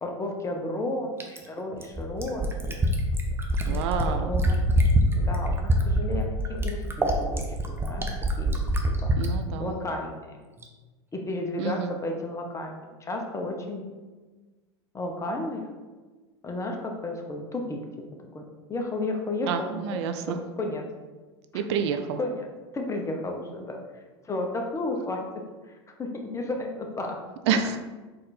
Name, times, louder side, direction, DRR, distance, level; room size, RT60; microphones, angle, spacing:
voice 1, 0.0-2.8 3.7-4.6 5.1-8.1 8.4-8.6 9.0-9.1 9.6-10.4 11.1-13.8 14.9-15.7 16.4-17.8 18.3-20.0 20.3-20.8 21.5-21.6 22.2-22.5 22.7-23.8 24.2-25.2 25.7-25.8 26.0-27.2, left 2 dB, 20° left, 2 dB, 0.7 m, -33 dB
Fill (with liquid), 1.2-9.3 10.6-10.7, right 1 dB, 15° right, 0.6 m, -24 dB
voice 2, 3.7-4.3 9.2-9.8 11.6-11.9 19.4-20.4 21.5-22.2 27.5-27.8, right 6 dB, 70° right, 7 dB, 0.4 m, -28 dB
4.2 x 2.5 x 4.1 m, 1.3 s
hypercardioid pair, 95°, 15 cm